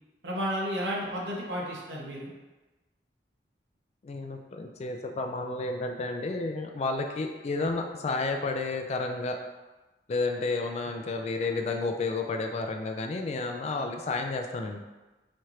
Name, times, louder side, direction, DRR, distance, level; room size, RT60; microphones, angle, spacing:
voice 1, 0.2-2.3, equal, 80° right, -4 dB, 0.8 m, -32 dB
voice 2, 4.0-9.4 10.1-14.8, left 3 dB, 35° left, 4 dB, 0.3 m, -31 dB
4.2 x 2.5 x 3.1 m, 1.1 s
head